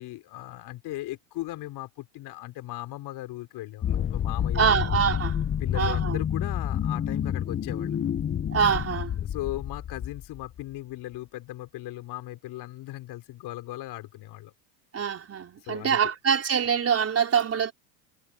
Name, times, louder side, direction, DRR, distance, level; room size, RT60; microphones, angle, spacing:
voice 1, 0.0-4.8 5.6-8.0 9.2-14.5 15.6-16.1, left 16 dB, 50° left, 4.1 m, -38 dB
sound 1, 3.8-10.6, left 9 dB, 25° left, 1.0 m, -29 dB
voice 2, 4.5-5.4 5.7-6.2 8.5-9.1 14.9-17.7, right 7 dB, 30° right, 4.3 m, -25 dB
supercardioid pair, 110°, 48 cm